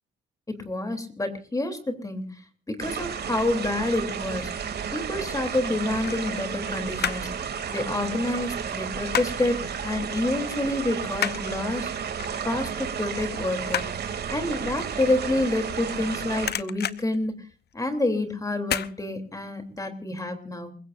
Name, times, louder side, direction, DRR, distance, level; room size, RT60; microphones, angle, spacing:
voice 1, 0.5-2.4 2.7-4.5 4.9-7.3 7.7-11.9 12.4-13.9 14.3-17.3 17.7-20.8, left 2 dB, 15° left, 6 dB, 3.3 m, -28 dB
sound 1, 2.8-16.5, right 7 dB, 55° right, 2.8 m, -32 dB
sound 2, 4.5-5.1 6.0-7.4 7.6-9.5 9.9-10.1 10.4-16.0 16.3-18.0 18.6-18.9 19.3-19.4, left 9 dB, 55° left, 0.9 m, -33 dB
28.5 x 16.5 x 2.6 m, 0.40 s
cardioid pair, 90°, 20 cm